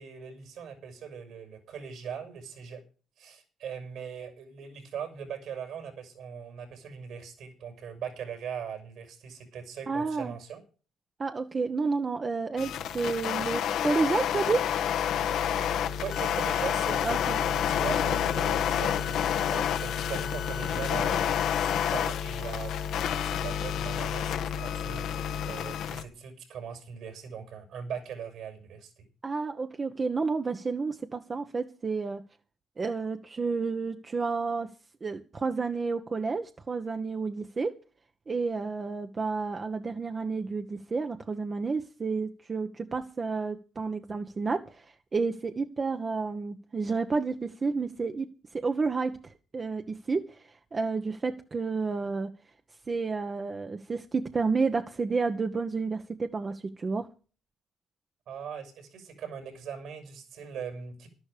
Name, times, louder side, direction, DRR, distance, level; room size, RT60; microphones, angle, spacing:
voice 1, 0.0-2.8 3.2-10.6 16.0-22.8 23.1-25.1 25.4-28.9 58.3-61.1, right 7 dB, 70° right, 6.6 m, -40 dB
voice 2, 9.9-10.3 11.2-14.7 17.0-17.4 29.2-32.2 32.8-34.7 35.0-37.7 38.3-44.9 45.1-48.3 48.5-52.3 52.9-57.1, right 4 dB, 30° right, 1.2 m, -30 dB
sound 1, 12.6-26.0, left 9 dB, 75° left, 1.4 m, -29 dB
12.5 x 11.5 x 5.1 m
cardioid pair, 120°, 0 cm